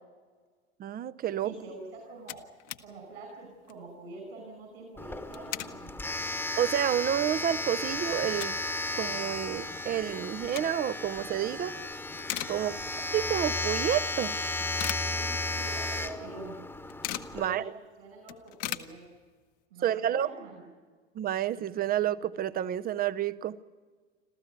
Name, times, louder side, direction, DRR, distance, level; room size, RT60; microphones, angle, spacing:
voice 1, 0.8-1.5 6.6-8.6 8.9-11.7 12.5-12.8 13.1-14.3 17.3-17.6 19.8-20.3 21.1-23.6, right 11 dB, 25° right, 15 dB, 0.8 m, -29 dB
voice 2, 1.4-2.5 2.8-5.9 12.5-12.9 15.0-16.6 17.3-17.7 18.0-19.1 19.7-20.7, right 2 dB, 70° right, 3 dB, 5.5 m, -45 dB
sound 1, 1.7-1.8 2.0-2.9 3.2-3.3 3.6-3.9 5.1-5.8 6.3-6.4 6.9-7.0 7.3-8.7 9.1-9.2 10.2-11.0 11.5-11.8 12.1-13.1 13.4-13.5 14.2-15.7 16.0-16.1 16.3-17.4 17.8-17.9 18.1-19.5, left 13 dB, 45° left, 1.2 m, -39 dB
Domestic sounds home sounds, 5.0-17.4, left 2 dB, 5° left, 1.3 m, -34 dB
27.0 x 14.5 x 9.3 m, 1.5 s
figure-of-eight pair, 75°, 33 cm